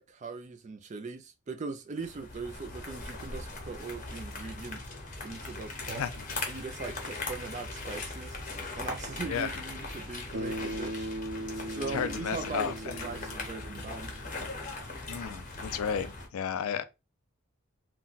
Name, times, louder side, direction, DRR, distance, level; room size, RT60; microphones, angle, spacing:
voice 1, 0.0-4.9 5.2-6.0 6.5-8.4 8.8-14.1, right 4 dB, 35° right, 0.3 m, -40 dB
sound 1, 2.0-16.3, left 3 dB, 35° left, 0.7 m, -40 dB
voice 2, 5.9-6.2 9.3-9.5 11.9-12.7 15.1-16.8, left 7 dB, 70° left, 0.4 m, -33 dB
Bass guitar, 10.3-14.7, equal, 85° right, 0.7 m, -39 dB
2.2 x 2.2 x 3.8 m
head